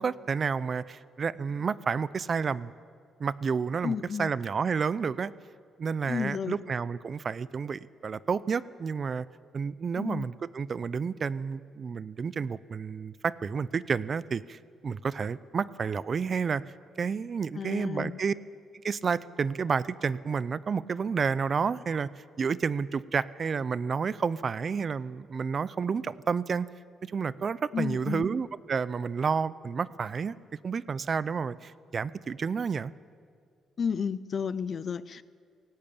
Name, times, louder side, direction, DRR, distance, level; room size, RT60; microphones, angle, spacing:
voice 1, 0.0-2.7 3.2-5.3 5.8-9.3 9.5-16.6 17.0-18.3 18.8-22.1 22.4-26.7 27.0-30.3 30.6-32.9, right 5 dB, 45° right, 18 dB, 0.6 m, -30 dB
voice 2, 3.8-4.3 6.1-6.6 10.0-10.3 17.5-18.2 27.7-28.3 33.8-35.2, left 6 dB, 50° left, 17 dB, 0.7 m, -32 dB
17.5 x 17.5 x 8.8 m, 2.1 s
cardioid pair, 90°, 0 cm